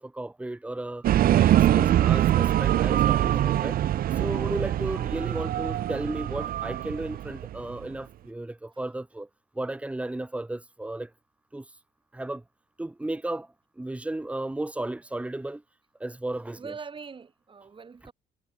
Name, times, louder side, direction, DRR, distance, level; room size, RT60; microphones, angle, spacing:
voice 1, 0.0-3.8 4.1-9.3 9.5-11.1 11.5-11.7 12.1-12.4 12.8-15.6 16.0-16.7 18.0-18.1, right 2 dB, 10° right, 1.6 m, -34 dB
sound 1, 1.0-7.8, right 12 dB, 60° right, 1.2 m, -23 dB
voice 2, 16.5-18.1, right 5 dB, 30° right, 6.6 m, -44 dB
cardioid pair, 110°, 17 cm